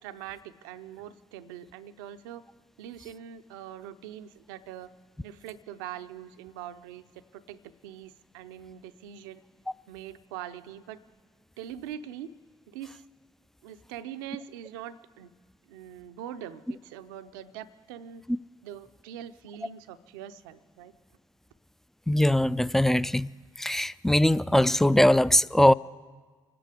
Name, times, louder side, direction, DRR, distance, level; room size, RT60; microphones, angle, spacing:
voice 1, 0.0-2.4 2.8-4.9 5.2-9.4 9.9-11.0 11.6-12.3 12.7-13.0 13.6-15.3 15.7-18.2 18.6-20.9, right 10 dB, 80° right, 0.6 m, -43 dB
voice 2, 22.1-23.3 23.6-25.7, left 1 dB, 5° left, 0.4 m, -21 dB
25.0 x 9.8 x 5.0 m
hypercardioid pair, 45°, 11 cm